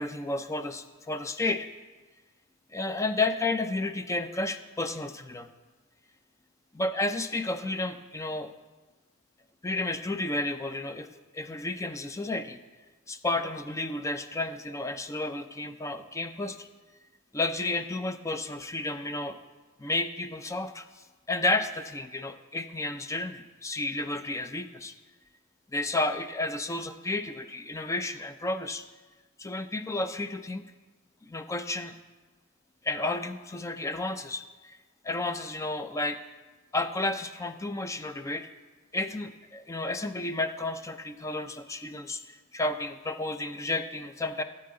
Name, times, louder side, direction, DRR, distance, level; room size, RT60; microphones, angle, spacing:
voice 1, 0.0-1.7 2.7-5.5 6.7-8.5 9.6-11.1 11.3-12.6 13.1-16.7 17.3-19.4 19.8-24.9 25.7-28.8 29.4-30.7 31.2-32.0 32.8-34.8 35.0-36.2 36.7-38.5 38.9-44.4, left 2 dB, 15° left, 9 dB, 0.4 m, -32 dB
13.0 x 7.6 x 3.8 m, 1.3 s
head